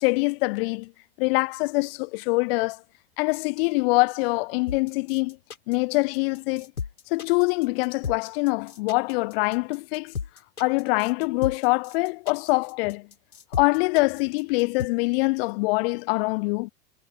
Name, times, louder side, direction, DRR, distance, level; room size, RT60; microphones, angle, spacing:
voice 1, 0.0-0.9 1.2-2.8 3.2-5.4 5.7-6.7 7.1-10.1 10.6-13.1 13.5-16.7, left 27 dB, 45° left, 0.6 m, -24 dB
sound 1, 4.7-14.9, left 6 dB, 80° left, 4.7 m, -35 dB
figure-of-eight pair, 90°, 43 cm